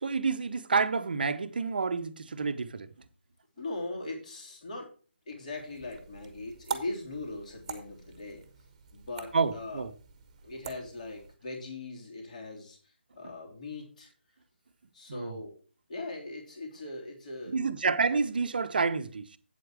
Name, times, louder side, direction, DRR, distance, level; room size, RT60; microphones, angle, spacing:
voice 1, 0.0-2.9 9.3-9.9 13.2-13.3 15.1-15.3 17.5-19.4, right 4 dB, 50° right, 0.8 m, -29 dB
voice 2, 3.6-4.9 5.3-8.4 8.9-9.8 10.4-12.8 13.1-14.1 14.9-15.5 15.9-17.5, left 2 dB, 40° left, 3.3 m, -40 dB
sound 1, 5.5-11.4, right 6 dB, 30° right, 1.2 m, -44 dB
8.4 x 7.8 x 4.7 m
figure-of-eight pair, 150°, 6 cm